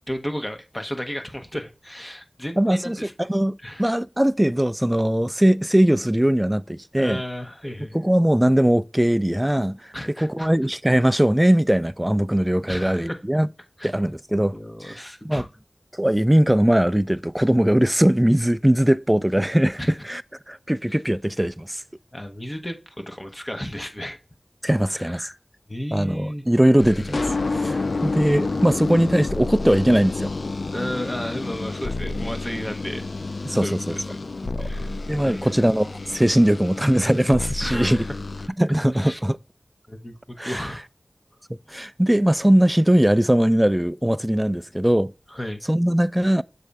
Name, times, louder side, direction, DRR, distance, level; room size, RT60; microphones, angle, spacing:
voice 1, 0.1-3.3 3.6-3.9 7.0-8.0 9.9-10.5 12.7-13.2 13.8-13.9 14.5-15.5 19.8-19.9 22.1-24.2 24.9-25.3 25.7-26.4 30.7-33.0 33.4-34.2 34.6-35.5 37.6-38.1 38.9-39.2 39.9-40.8 45.3-45.6, equal, 20° left, 1.0 m, -33 dB
voice 2, 2.6-3.0 3.3-7.2 7.9-13.5 13.8-14.5 14.8-15.5 15.9-20.2 20.5-21.8 24.6-25.3 25.9-27.3 27.5-30.3 33.5-34.0 34.6-34.7 35.1-38.1 38.6-39.4 40.4-40.6 41.7-45.1 45.7-46.4, right 1 dB, 10° right, 0.3 m, -20 dB
sound 1, 26.8-38.5, left 3 dB, 80° left, 0.4 m, -29 dB
6.6 x 4.1 x 3.5 m
wide cardioid pair, 65°, 0 cm